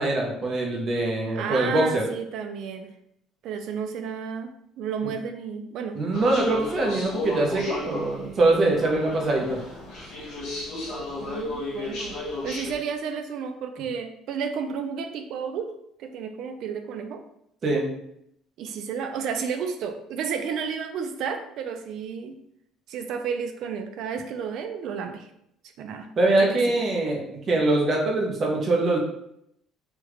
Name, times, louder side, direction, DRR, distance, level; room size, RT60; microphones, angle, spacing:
voice 1, 0.0-2.0 5.0-5.1 5.9-9.6 17.6-17.9 26.2-29.0, right 2 dB, 30° right, -1 dB, 0.7 m, -23 dB
voice 2, 1.4-2.9 3.4-6.0 11.2-15.7 16.0-17.2 18.6-22.4 22.9-25.3 25.8-26.1, right 6 dB, 55° right, 6 dB, 0.4 m, -32 dB
sound 1, 6.1-12.8, left 2 dB, 55° left, 1.2 m, -33 dB
3.4 x 2.3 x 3.1 m, 0.75 s
cardioid pair, 160°, 0 cm